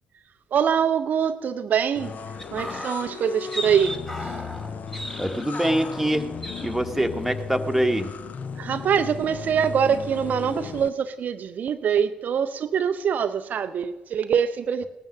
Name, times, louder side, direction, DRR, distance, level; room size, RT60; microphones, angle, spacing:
voice 1, 0.5-2.2 2.5-4.4 8.6-14.9, right 7 dB, 50° right, 10 dB, 0.5 m, -24 dB
sound 1, 2.0-10.9, left 6 dB, 50° left, 0.7 m, -36 dB
sound 2, 2.4-6.2 6.4-6.8 7.1-7.3, equal, 15° left, 1.7 m, -36 dB
voice 2, 5.2-6.3 6.6-8.1, right 1 dB, 5° right, 5 dB, 1.3 m, -24 dB
18.0 x 9.4 x 6.5 m, 1.2 s
figure-of-eight pair, 45°, 4 cm